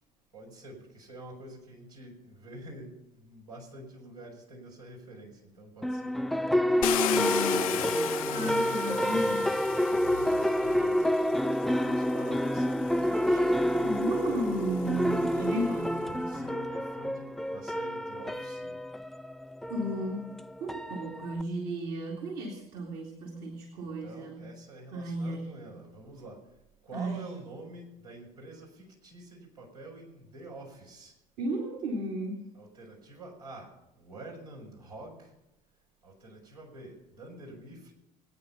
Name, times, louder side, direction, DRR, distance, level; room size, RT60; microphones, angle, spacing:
voice 1, 0.3-7.9 10.2-11.1 11.7-14.5 16.1-18.8 24.0-26.4 26.8-31.1 32.5-35.3 36.0-37.9, right 1 dB, 85° right, -4 dB, 5.0 m, -47 dB
sound 1, 5.8-21.4, equal, ahead, 0.4 m, -29 dB
Car, 6.8-10.9 11.9-12.0 12.5-15.8, left 12 dB, 65° left, 0.8 m, -35 dB
voice 2, 8.3-9.7 13.8-16.4 19.7-24.6 24.9-25.6 26.9-27.3 31.4-32.5, right 1 dB, 55° right, -1 dB, 2.5 m, -34 dB
21.0 x 9.3 x 5.5 m, 0.92 s
figure-of-eight pair, 60°, 19 cm